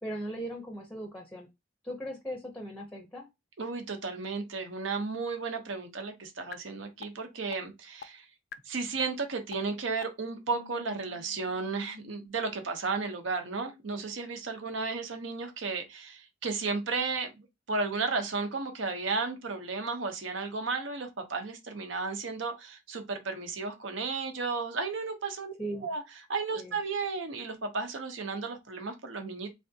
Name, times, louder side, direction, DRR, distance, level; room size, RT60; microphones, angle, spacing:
voice 1, 0.0-1.5 1.8-3.3 25.6-25.9 26.6-26.8, right 1 dB, 5° left, 0.5 m, -38 dB
voice 2, 3.6-8.2 8.7-25.5 25.8-26.0 26.3-29.5, right 4 dB, 85° right, 0.8 m, -34 dB
sound 1, 6.5-6.6 7.0-7.1 7.5-7.6 8.0-8.1 8.5-8.6 9.0-9.1 9.5-9.6 10.0-10.1 10.5-12.3, left 7 dB, 55° left, 0.3 m, -46 dB
3.5 x 3.3 x 2.7 m
head